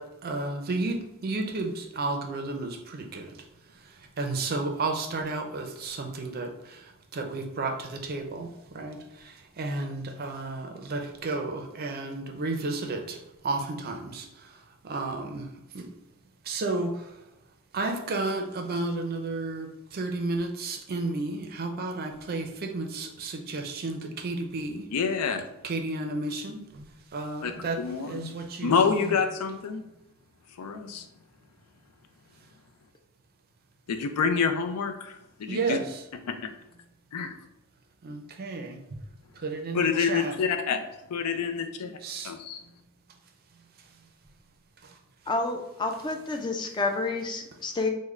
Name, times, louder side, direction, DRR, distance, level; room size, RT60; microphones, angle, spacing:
voice 1, 0.0-3.4 3.8-15.5 15.7-15.9 16.4-17.2 17.7-24.9 25.6-29.2 35.5-36.0 38.0-38.8 39.4-40.4 42.0-42.3 44.8-45.0, right 3 dB, 45° right, 4 dB, 0.4 m, -32 dB
voice 2, 24.9-25.5 27.4-27.5 27.8-28.3 28.6-29.8 30.6-31.1 34.0-35.8 37.1-37.3 39.7-40.8 41.1-41.9 42.2-42.6, left 6 dB, 90° left, 7 dB, 0.4 m, -27 dB
voice 3, 45.3-47.9, left 3 dB, 20° left, 4 dB, 0.3 m, -29 dB
3.6 x 2.1 x 3.1 m, 0.92 s
head